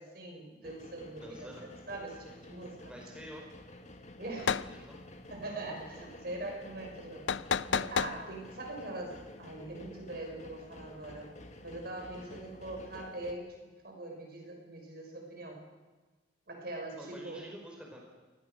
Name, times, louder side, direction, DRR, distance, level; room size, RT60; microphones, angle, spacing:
voice 1, 0.0-1.5 1.9-2.9 4.2-4.7 5.3-7.3 7.7-11.3 11.6-13.5 13.8-15.6 16.5-17.5, right 2 dB, 55° right, 2 dB, 6.2 m, -42 dB
sound 1, 0.6-13.3, left 1 dB, 40° left, 1.9 m, -51 dB
voice 2, 1.2-1.7 2.8-3.5 4.5-5.0 17.0-18.0, equal, 5° right, -1 dB, 4.6 m, -48 dB
sound 2, 4.4-4.7 7.3-8.2, left 6 dB, 80° left, 0.6 m, -30 dB
26.5 x 19.5 x 6.5 m, 1.2 s
head